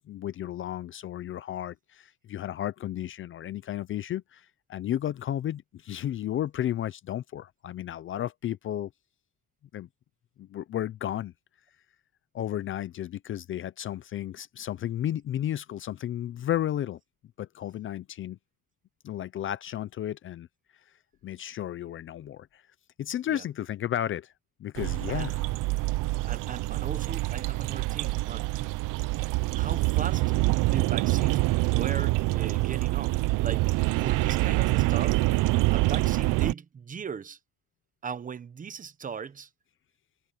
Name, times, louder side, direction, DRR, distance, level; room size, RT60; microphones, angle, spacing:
voice 1, 0.1-8.9 9.7-9.9 10.4-11.3 12.3-17.0 17.4-18.4 19.0-20.5 21.2-22.6 23.0-24.3 24.6-25.4, left 11 dB, 40° left, 0.5 m, -33 dB
sound 1, 24.8-36.5, right 21 dB, 80° right, 0.6 m, -26 dB
voice 2, 26.3-28.5 29.5-30.2 30.6-33.1 33.4-33.7 34.0-35.2 35.7-37.4 38.0-39.5, right 6 dB, 25° right, 1.0 m, -38 dB
cardioid pair, 165°, 32 cm